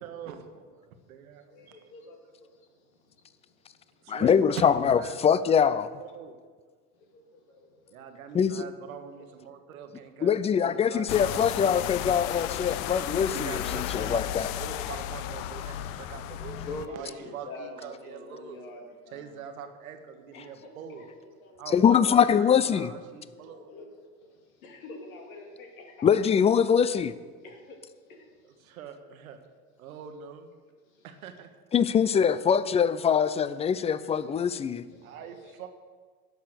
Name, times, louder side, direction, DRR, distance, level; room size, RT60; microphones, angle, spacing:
voice 1, 0.0-1.8 4.0-6.4 7.9-11.1 11.4-11.6 13.2-18.6 19.1-21.1 21.6-23.6 28.4-29.4 29.8-30.6 31.0-31.5 35.0-35.7, right 7 dB, 80° right, 7 dB, 1.3 m, -43 dB
voice 2, 1.5-2.5 7.1-8.1 9.1-9.2 10.5-11.0 11.3-11.4 16.7-18.8 19.1-19.3 20.3-20.7 21.0-22.0 23.5-23.8 24.6-26.1 27.4-27.8 28.1-28.2 33.2-33.4 34.0-34.1 34.9-35.5, left 2 dB, 80° left, 2 dB, 2.3 m, -46 dB
voice 3, 4.1-5.9 8.3-8.7 10.2-14.5 21.7-22.9 26.0-27.1 31.7-34.8, left 7 dB, 15° left, 16 dB, 0.4 m, -23 dB
sound 1, 11.1-16.9, left 12 dB, 55° left, 0.7 m, -34 dB
11.0 x 7.0 x 6.7 m, 1.5 s
hypercardioid pair, 80°, 42 cm